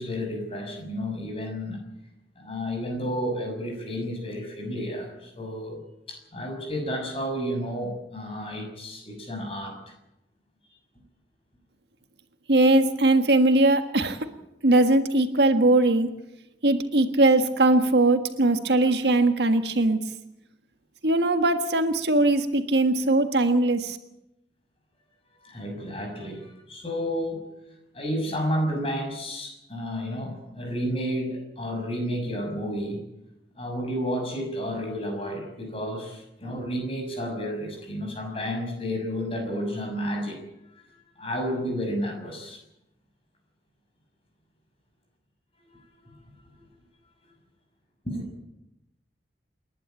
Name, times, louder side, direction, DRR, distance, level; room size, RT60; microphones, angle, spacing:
voice 1, 0.0-1.8 2.3-5.8 6.1-9.9 18.8-18.9 25.4-27.4 27.9-33.0 33.6-40.4 40.7-40.8 41.2-42.6 45.6-45.7 46.0-46.2 46.5-46.6 48.0-48.2, equal, 35° left, 3 dB, 6.3 m, -31 dB
voice 2, 12.5-14.2 14.6-16.1 16.6-20.0 21.0-24.0, right 2 dB, 70° right, 8 dB, 1.6 m, -20 dB
28.5 x 11.5 x 9.0 m, 0.87 s
head